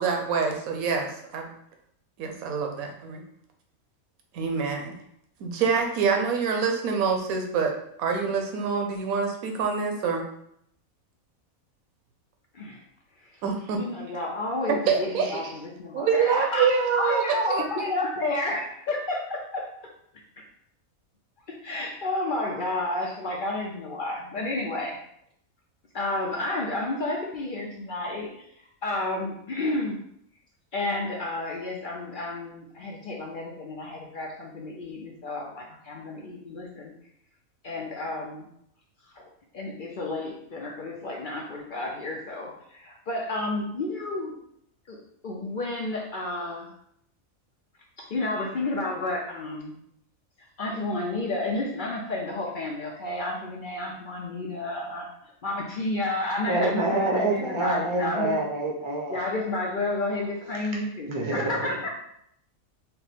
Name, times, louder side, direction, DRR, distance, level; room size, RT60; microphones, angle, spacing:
voice 1, 0.0-1.5 2.2-3.2 4.3-4.9 5.4-7.7 8.0-10.2 13.4-13.8 14.9-15.5 15.9-17.6, right 5 dB, 80° right, 3 dB, 1.2 m, -26 dB
voice 2, 13.8-19.7 20.4-20.5 21.5-25.0 25.9-28.3 28.8-30.0 30.7-36.9 37.6-38.5 39.1-39.2 39.5-44.4 44.9-45.0 45.2-46.7 48.0-49.7 50.6-55.1 55.4-58.4 59.1-61.9, left 2 dB, 60° left, -1 dB, 0.5 m, -31 dB
voice 3, 56.5-59.2 61.0-61.8, right 2 dB, 30° right, -1 dB, 0.6 m, -26 dB
4.4 x 2.1 x 4.0 m, 0.72 s
omnidirectional pair, 1.5 m